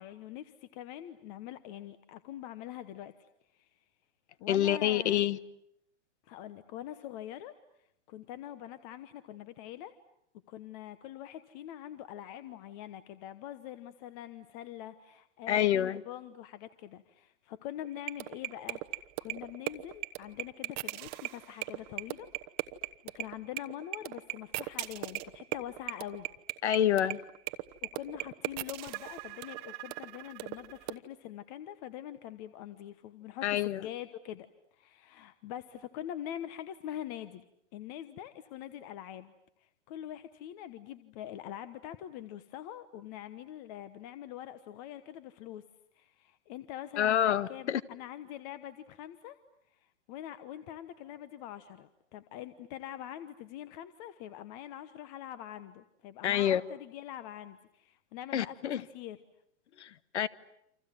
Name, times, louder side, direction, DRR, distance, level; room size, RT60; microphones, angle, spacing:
voice 1, 0.0-3.8 4.4-5.3 6.2-7.5 8.1-9.9 10.5-22.3 23.1-26.3 27.8-37.5 37.7-39.3 39.6-45.6 45.9-49.4 49.7-59.2, left 11 dB, 35° left, 1.2 m, -44 dB
voice 2, 4.5-5.4 15.5-16.0 26.6-27.2 33.4-33.9 47.0-47.8 56.2-56.6 58.3-58.8 59.8-60.3, left 11 dB, 65° left, 1.4 m, -27 dB
sound 1, 17.8-30.9, right 23 dB, 30° right, 1.1 m, -37 dB
29.0 x 26.5 x 7.6 m
hypercardioid pair, 145°, 36 cm